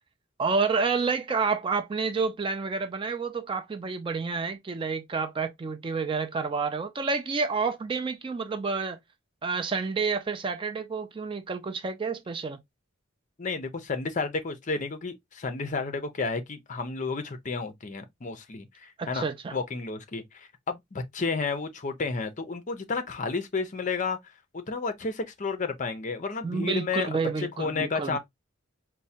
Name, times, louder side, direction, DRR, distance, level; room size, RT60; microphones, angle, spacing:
voice 1, 0.4-9.0 9.4-12.6 19.0-19.6 26.4-28.2, right 4 dB, 25° right, 0.3 m, -29 dB
voice 2, 13.4-24.2 24.5-27.1 27.4-28.2, left 4 dB, 40° left, 0.6 m, -31 dB
4.4 x 2.1 x 2.7 m
head